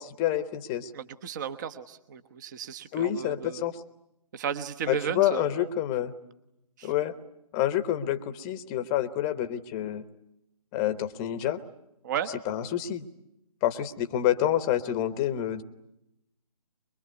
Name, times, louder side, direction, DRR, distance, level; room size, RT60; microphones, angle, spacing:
voice 1, 0.0-0.9 2.9-3.8 4.9-6.1 6.8-7.1 7.5-10.0 10.7-11.6 12.5-13.1 13.6-15.6, left 11 dB, 15° left, 11 dB, 1.0 m, -28 dB
voice 2, 0.9-3.7 4.3-5.7 6.8-6.9 12.0-12.3, right 8 dB, 30° right, 11 dB, 1.1 m, -34 dB
24.0 x 23.0 x 9.5 m, 0.84 s
figure-of-eight pair, 145°, 20 cm